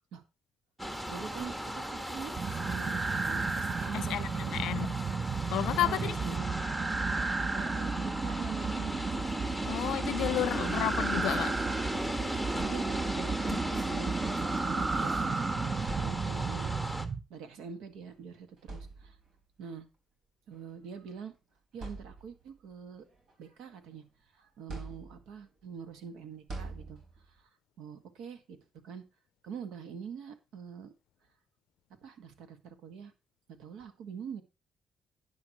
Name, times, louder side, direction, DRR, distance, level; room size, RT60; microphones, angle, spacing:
sound 1, 0.8-17.1, equal, 10° right, 1.5 m, -37 dB
voice 1, 1.1-4.9 5.8-6.5 7.5-9.6 10.4-10.9 12.6-16.7 17.3-19.2 19.6-19.9 20.5-21.3 21.7-23.0 23.4-24.0 24.3-27.0 27.3-27.4 27.8-28.6 28.8-29.0 29.4-30.9 32.0-33.1 33.6-34.4, right 6 dB, 90° right, 1.8 m, -44 dB
sound 2, 2.3-17.2, right 4 dB, 35° right, 0.8 m, -33 dB
voice 2, 3.9-4.9 5.5-6.1 9.6-11.5 13.5-13.6, left 14 dB, 85° left, 0.4 m, -32 dB
sound 3, 15.9-16.7 17.9-18.1 18.6-19.4 20.5-20.7 21.2-21.3 21.7-22.6 23.1-24.1 24.7-25.5 26.5-27.4, right 3 dB, 65° right, 4.2 m, -44 dB
11.0 x 9.6 x 3.1 m
cardioid pair, 90°, 0 cm